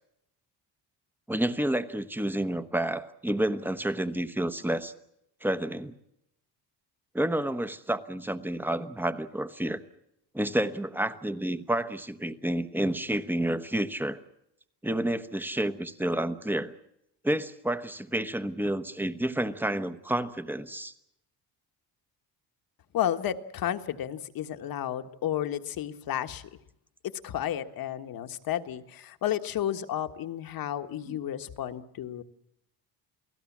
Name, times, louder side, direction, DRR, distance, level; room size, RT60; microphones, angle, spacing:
voice 1, 1.3-4.9 5.4-5.9 7.1-9.8 10.3-14.2 14.8-16.7 17.2-20.9 31.1-31.2, right 1 dB, 5° right, 10 dB, 1.1 m, -30 dB
voice 2, 22.9-26.5 27.0-32.2, left 11 dB, 60° left, 9 dB, 1.5 m, -32 dB
29.0 x 18.0 x 7.3 m, 0.80 s
cardioid pair, 125°, 40 cm